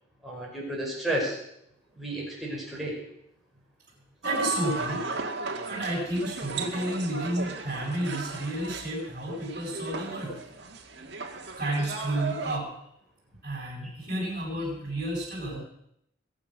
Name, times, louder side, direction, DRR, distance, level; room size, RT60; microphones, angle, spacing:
voice 1, 0.2-1.4 1.9-3.0 13.8-13.9, right 1 dB, ahead, -5 dB, 5.8 m, -32 dB
voice 2, 4.2-5.0 5.7-10.4 11.6-12.7 13.4-15.6, right 1 dB, 40° right, -5 dB, 7.2 m, -31 dB
sound 1, 4.2-12.6, right 3 dB, 60° right, 2.0 m, -36 dB
22.0 x 9.2 x 6.4 m, 0.75 s
head